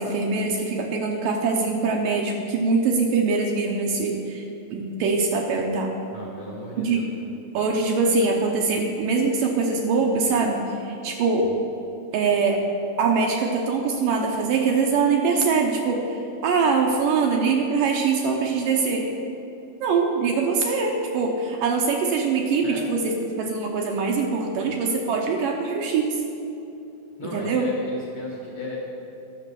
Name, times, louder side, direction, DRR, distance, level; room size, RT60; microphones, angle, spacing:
voice 1, 0.0-4.4 4.7-5.9 6.8-7.0 7.5-11.5 12.1-12.6 13.0-19.1 19.8-26.2 27.2-27.7, right 4 dB, 75° right, 1 dB, 2.2 m, -23 dB
voice 2, 6.1-7.0 11.4-11.5 22.6-22.8 24.6-24.7 27.2-28.8, left 2 dB, 55° left, -4 dB, 1.7 m, -36 dB
11.5 x 6.5 x 6.8 m, 2.9 s
omnidirectional pair, 4.4 m